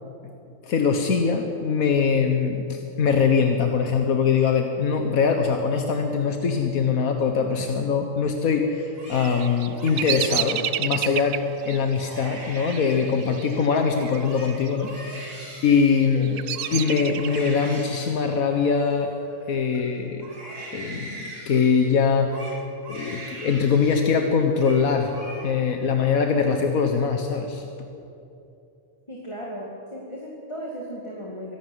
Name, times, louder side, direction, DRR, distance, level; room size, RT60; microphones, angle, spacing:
voice 1, 0.6-11.4 11.6-16.4 16.7-19.1 19.5-20.2 20.7-22.5 22.9-25.1 25.4-27.6, left 5 dB, 90° left, 4 dB, 1.7 m, -22 dB
Crying sobbing, 8.8-11.1 11.6-11.7 12.0-13.7 14.0-19.8 20.2-24.1 24.4-24.8 25.1-25.8 26.1-26.8, right 1 dB, 60° right, 6.2 m, -41 dB
Bird vocalization bird call bird song, 9.2-14.2 14.5-15.1 15.7-17.7, right 11 dB, 85° right, 1.2 m, -30 dB
voice 2, 29.1-31.6, equal, 20° left, -2 dB, 2.2 m, -36 dB
24.0 x 11.5 x 9.5 m, 2.7 s
omnidirectional pair, 1.4 m